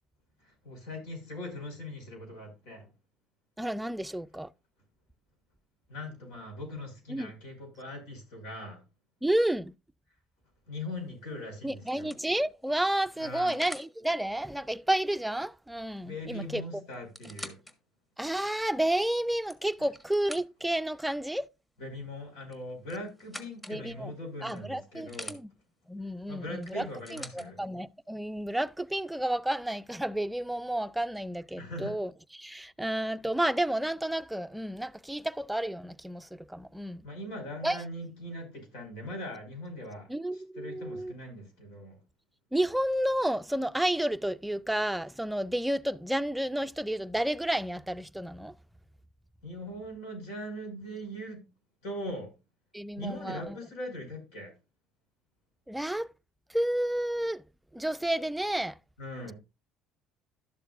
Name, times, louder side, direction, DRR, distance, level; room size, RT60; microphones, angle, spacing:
voice 1, 0.4-2.9 5.9-8.8 10.7-12.1 13.2-13.6 16.0-17.6 21.8-25.4 26.0-27.6 31.6-31.9 37.0-42.0 49.4-51.4 51.8-52.3 53.0-54.5 59.0-59.3, left 1 dB, 90° left, 5.0 m, -41 dB
voice 2, 3.6-4.5 7.1-7.3 9.2-9.7 11.6-16.8 18.2-21.5 23.7-24.1 24.4-25.5 25.9-26.9 27.1-37.0 37.6-37.8 40.1-41.1 42.5-48.5 52.7-53.6 55.7-56.1 56.5-57.5 57.7-58.8 59.3-59.4, right 1 dB, 5° right, 0.4 m, -31 dB
sound 1, 11.0-11.3 11.9-13.9 16.0-16.1 16.3-16.4 16.9-17.7 18.3-18.4 19.2-20.8 22.5-23.8 24.5-25.4 26.6-27.5 28.4-28.5, left 1 dB, 15° left, 1.4 m, -46 dB
12.0 x 6.9 x 2.5 m
supercardioid pair, 95°, 0 cm